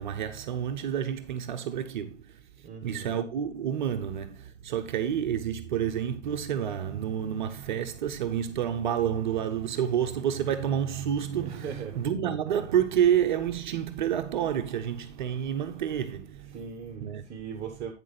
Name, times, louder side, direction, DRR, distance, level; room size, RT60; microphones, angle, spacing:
voice 1, 0.0-2.4 2.8-16.6 17.0-17.3, right 9 dB, 35° right, 0.8 m, -29 dB
voice 2, 2.6-3.2 11.4-12.0 16.4-17.9, right 6 dB, 15° right, 1.1 m, -39 dB
8.9 x 6.2 x 4.1 m
figure-of-eight pair, 120°, 40 cm